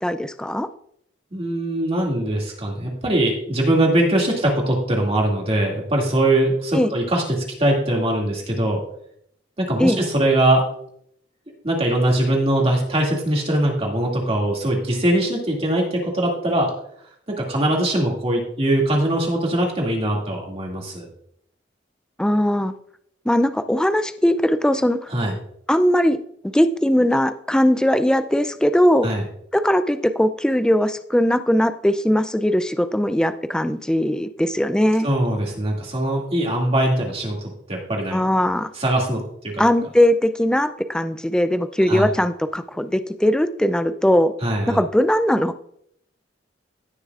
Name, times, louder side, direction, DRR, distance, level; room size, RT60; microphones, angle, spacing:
voice 1, 0.0-0.7 6.7-6.9 9.8-10.0 22.2-22.7 23.3-25.0 25.7-26.2 26.4-29.1 29.5-35.1 38.1-38.7 39.6-44.3 44.7-45.6, equal, 5° left, 11 dB, 0.3 m, -19 dB
voice 2, 1.3-8.8 9.6-10.6 11.6-16.7 17.4-21.1 25.1-25.3 29.0-29.2 35.0-37.4 37.7-38.2 38.8-39.7 41.9-42.1 44.4-44.8, right 1 dB, 30° right, -1 dB, 2.2 m, -21 dB
16.5 x 6.6 x 2.4 m, 0.71 s
head